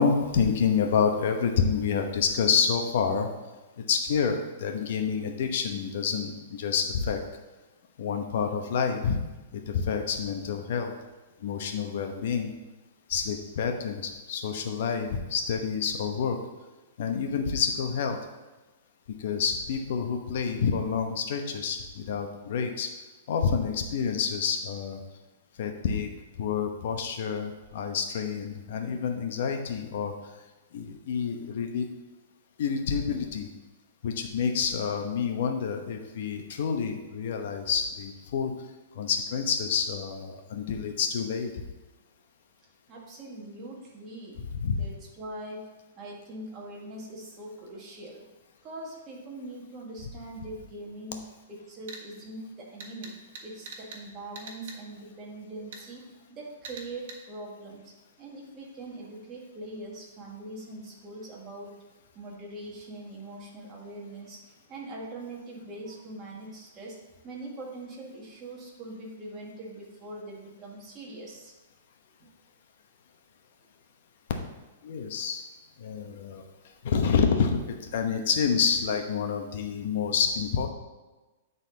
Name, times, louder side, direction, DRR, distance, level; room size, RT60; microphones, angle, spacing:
voice 1, 0.0-3.3 3.8-7.2 8.0-9.2 9.5-10.9 11.4-12.5 13.1-16.4 17.0-18.2 19.2-22.9 23.3-25.0 25.6-26.1 26.4-30.1 30.7-31.9 32.6-33.5 34.0-38.5 39.0-41.5 44.4-44.9 74.8-75.4 75.8-76.4 76.8-80.7, left 6 dB, 60° left, 4 dB, 1.0 m, -28 dB
voice 2, 42.9-45.6 46.0-48.2 48.6-51.2 51.5-53.2 53.4-57.9 58.2-61.8 62.1-67.0 67.2-71.5, right 2 dB, 25° right, -2 dB, 1.7 m, -42 dB
sound 1, 51.9-52.0 52.8-54.0 54.3-54.8 55.7-55.8 56.6-57.2, right 4 dB, 60° right, 1.5 m, -42 dB
9.4 x 4.1 x 4.0 m, 1.2 s
hypercardioid pair, 155°, 0 cm